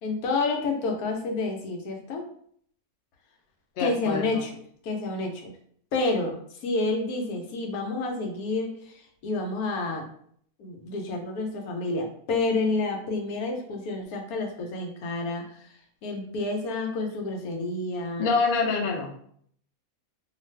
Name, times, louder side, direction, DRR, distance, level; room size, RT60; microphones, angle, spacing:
voice 1, 0.0-2.3 3.8-4.5 4.8-5.5 5.9-10.1 10.6-15.7 16.0-18.2, left 3 dB, 90° left, 2 dB, 1.1 m, -29 dB
voice 2, 3.8-4.4 18.2-19.1, left 4 dB, 60° left, 1 dB, 0.7 m, -26 dB
2.6 x 2.4 x 3.2 m, 0.63 s
omnidirectional pair, 1.5 m